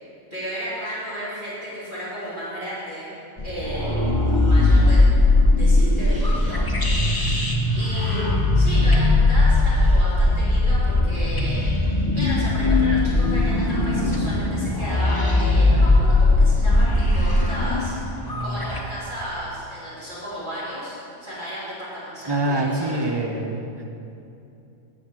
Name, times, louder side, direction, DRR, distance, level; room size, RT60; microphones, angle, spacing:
voice 1, 0.3-3.1 3.4-5.0 5.6-17.9 18.4-23.0, equal, 45° right, -10 dB, 3.0 m, -34 dB
sound 1, 3.4-18.8, left 2 dB, 20° left, 0.8 m, -19 dB
voice 2, 22.3-23.6, right 2 dB, 25° right, 2 dB, 0.8 m, -24 dB
9.6 x 5.8 x 7.5 m, 2.7 s
omnidirectional pair, 1.2 m